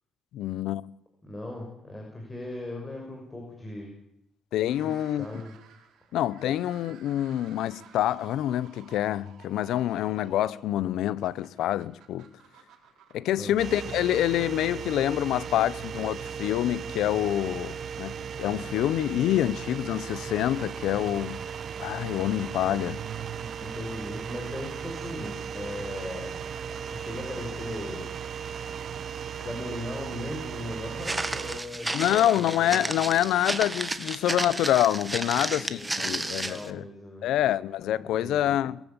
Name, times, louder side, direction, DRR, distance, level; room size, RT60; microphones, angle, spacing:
voice 1, 0.3-0.8 4.5-5.3 6.1-12.3 13.1-21.4 21.8-23.0 31.9-36.8 37.2-38.8, left 12 dB, 85° left, 0.8 m, -26 dB
voice 2, 1.2-3.9 4.8-5.5 13.4-13.5 23.6-26.4 26.7-28.1 29.4-33.3 35.3-37.3 38.0-38.5, left 1 dB, 20° left, 6.2 m, -39 dB
sound 1, 4.6-15.9, right 8 dB, 80° right, 4.3 m, -55 dB
sound 2, 13.6-31.6, right 7 dB, 55° right, 1.3 m, -36 dB
Walk footsteps, 31.0-36.7, right 2 dB, 15° right, 1.8 m, -32 dB
22.0 x 14.5 x 8.9 m
cardioid pair, 90°, 0 cm